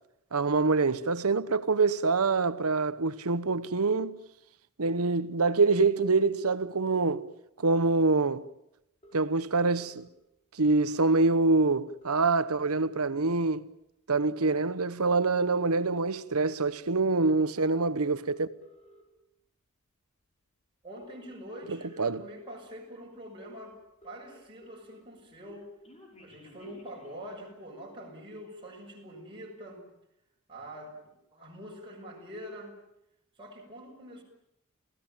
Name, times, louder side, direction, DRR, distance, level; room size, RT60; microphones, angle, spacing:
voice 1, 0.3-4.2 4.8-7.3 7.6-8.4 9.1-10.1 10.6-13.7 14.1-18.5 21.7-22.2, right 3 dB, 80° right, 1.1 m, -25 dB
sound 1, 9.0-10.0 11.2-11.3 11.6-11.7 11.9-13.3 13.8-14.0 14.9-16.0 16.7-17.0 17.9-19.0 20.2-20.3 20.8-22.0 22.7-22.8 23.1-23.2 23.4-23.5 23.7-25.0 25.3-27.5, equal, 30° left, 6.4 m, -56 dB
voice 2, 20.8-23.8 24.0-25.7 26.2-29.9 30.5-32.8 33.4-34.2, equal, 25° right, 6.4 m, -45 dB
29.0 x 17.0 x 9.0 m
head